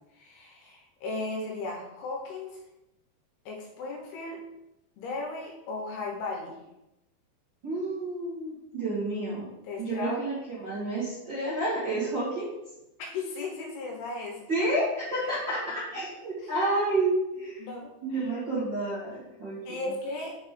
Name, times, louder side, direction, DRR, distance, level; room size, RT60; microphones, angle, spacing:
voice 1, 0.2-2.6 3.5-4.4 5.0-6.6 9.6-10.2 13.0-14.4 15.3-15.4 16.4-16.5 17.6-18.3 19.7-20.4, left 3 dB, 75° left, 0 dB, 2.8 m, -36 dB
voice 2, 7.6-9.5 9.8-12.5 14.5-17.6 18.0-19.8, right 2 dB, 40° right, -10 dB, 1.9 m, -30 dB
6.6 x 5.4 x 3.7 m, 0.90 s
omnidirectional pair, 4.9 m